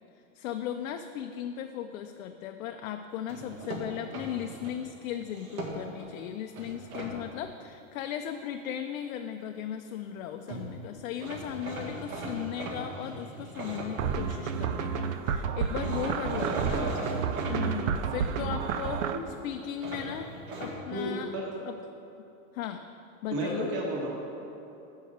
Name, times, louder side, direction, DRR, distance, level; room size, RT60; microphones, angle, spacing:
voice 1, 0.3-16.8 17.5-20.3 20.6-21.3 21.7-21.8 22.5-22.8 23.2-23.7, left 9 dB, 70° left, 6 dB, 0.5 m, -37 dB
sound 1, 3.3-4.7 5.3-6.1 6.6-7.1 10.2-10.3 10.5-10.7 11.2-14.7 15.8-17.6 19.8-20.8, right 2 dB, 85° right, 1.8 m, -39 dB
sound 2, 14.0-19.2, right 7 dB, 65° right, 0.6 m, -30 dB
voice 2, 16.5-17.0 19.1-19.2 20.9-21.6 23.3-24.1, right 1 dB, 25° right, -3 dB, 1.3 m, -33 dB
6.6 x 5.5 x 6.5 m, 2.9 s
supercardioid pair, 170°, 43 cm